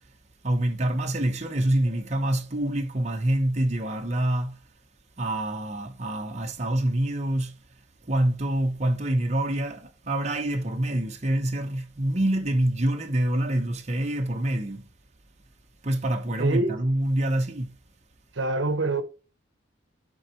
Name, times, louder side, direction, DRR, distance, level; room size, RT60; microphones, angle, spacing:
voice 1, 0.4-4.6 5.2-7.6 8.0-14.9 15.8-17.8, right 1 dB, 35° right, 0.9 m, -26 dB
voice 2, 16.4-16.9 18.3-19.0, right 2 dB, 75° right, 1.0 m, -25 dB
7.2 x 4.6 x 3.1 m
head